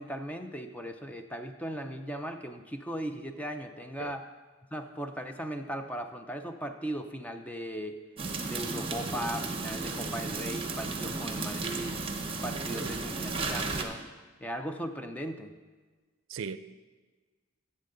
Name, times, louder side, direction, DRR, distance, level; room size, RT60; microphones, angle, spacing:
voice 1, 0.0-4.3 4.7-8.0 8.5-12.0 12.4-14.0 14.4-15.5, equal, 5° left, 0.4 m, -38 dB
voice 2, 4.0-4.1 12.7-12.9 16.3-16.6, right 6 dB, 70° right, 0.4 m, -38 dB
sound 1, 8.2-13.8, right 3 dB, 30° right, 0.9 m, -34 dB
13.0 x 7.4 x 3.8 m
head